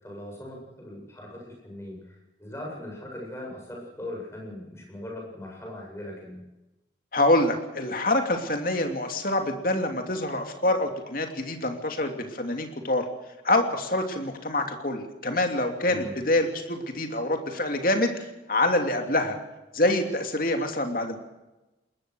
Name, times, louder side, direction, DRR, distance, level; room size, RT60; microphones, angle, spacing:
voice 1, 0.0-6.4 15.9-16.1, left 1 dB, 15° left, -1 dB, 7.8 m, -40 dB
voice 2, 7.1-13.1 13.4-19.4 19.7-21.2, left 1 dB, 50° left, 5 dB, 2.9 m, -26 dB
21.0 x 20.5 x 6.4 m, 1.0 s
head